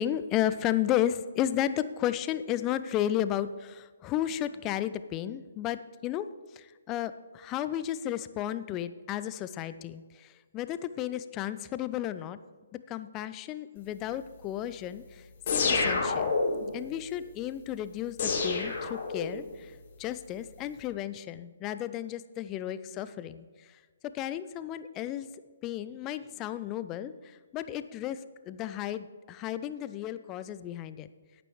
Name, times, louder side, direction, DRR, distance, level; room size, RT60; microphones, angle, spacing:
voice 1, 0.0-6.3 6.6-10.3 10.5-12.4 12.9-15.2 15.5-16.3 16.7-19.7 20.0-23.5 24.1-25.3 25.6-27.1 27.5-28.2 28.4-31.1, left 11 dB, 20° left, 13 dB, 0.5 m, -33 dB
sound 1, 15.5-16.7 18.2-19.5, left 4 dB, 40° left, 2.6 m, -28 dB
18.0 x 9.1 x 3.1 m, 1.5 s
figure-of-eight pair, 130°, 0 cm